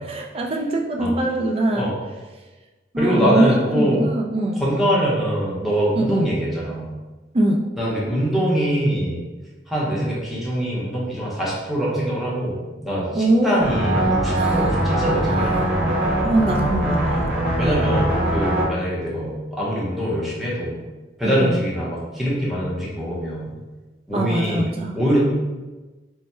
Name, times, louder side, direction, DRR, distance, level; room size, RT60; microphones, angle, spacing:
voice 1, 0.1-1.9 2.9-4.6 5.9-6.4 7.3-7.7 13.1-13.8 14.4-14.7 15.3-15.7 16.2-17.3 21.2-21.6 24.1-25.0, right 1 dB, 30° right, 1 dB, 0.3 m, -22 dB
voice 2, 3.0-4.0 4.6-6.9 7.8-9.2 9.7-15.7 17.6-20.8 21.2-23.5 24.1-24.6 25.0-25.2, equal, ahead, -7 dB, 0.7 m, -23 dB
sound 1, 13.6-18.6, right 1 dB, 80° right, 1.4 m, -22 dB
3.4 x 2.1 x 4.2 m, 1.2 s
head